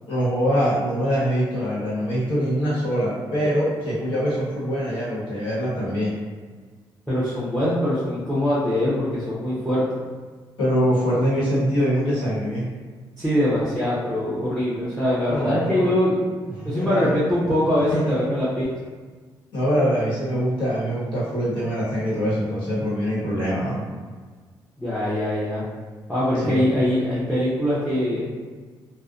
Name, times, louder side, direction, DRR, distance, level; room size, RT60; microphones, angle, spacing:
voice 1, 0.1-6.1 10.6-12.7 15.3-15.9 16.6-17.1 17.9-18.3 19.5-23.8 26.4-26.6, equal, 70° left, -7 dB, 1.1 m, -23 dB
voice 2, 7.1-9.8 13.2-16.3 16.6-18.7 24.8-25.6 26.1-28.3, left 1 dB, 5° left, -10 dB, 0.7 m, -23 dB
2.4 x 2.0 x 2.4 m, 1.5 s
cardioid pair, 105°, 9 cm